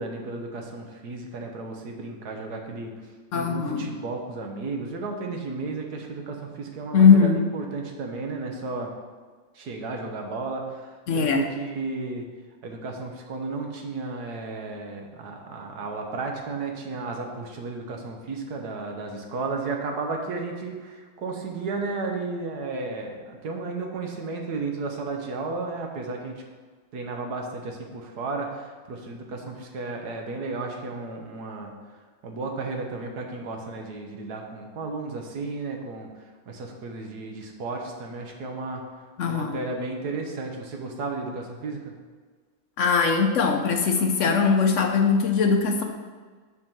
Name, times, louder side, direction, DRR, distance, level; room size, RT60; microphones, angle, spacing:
voice 1, 0.0-2.9 3.3-8.9 9.5-12.3 12.6-26.3 26.9-38.8 39.2-41.9, right 3 dB, 60° right, 2 dB, 1.5 m, -33 dB
voice 2, 3.3-3.9 6.9-7.4 11.1-11.4 39.2-39.6 42.8-45.8, left 5 dB, 60° left, 3 dB, 0.8 m, -20 dB
7.4 x 4.5 x 6.7 m, 1.5 s
omnidirectional pair, 2.1 m